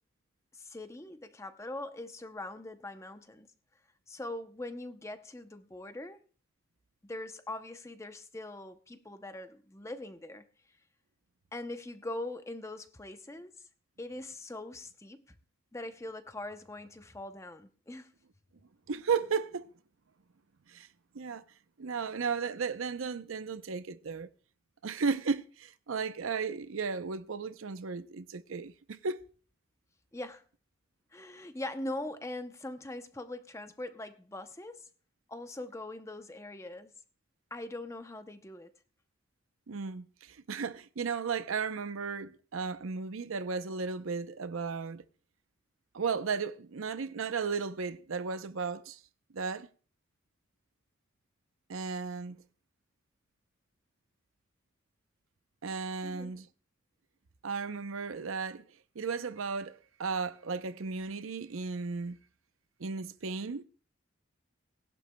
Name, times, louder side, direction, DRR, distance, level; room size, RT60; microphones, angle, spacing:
voice 1, 0.5-3.5 4.1-6.2 7.0-10.5 11.5-13.5 14.0-15.2 15.7-18.1 30.1-30.4 31.1-34.9 35.3-36.9 37.5-38.7 56.0-56.4, left 2 dB, 15° left, 0.6 m, -42 dB
voice 2, 18.9-19.7 20.7-20.9 21.1-21.4 21.8-24.3 24.8-29.2 39.7-45.0 45.9-49.0 49.3-49.7 51.7-52.4 55.6-56.5 57.4-58.6 59.0-62.2 62.8-63.6, right 5 dB, 80° right, 0.6 m, -35 dB
19.0 x 11.5 x 2.2 m
head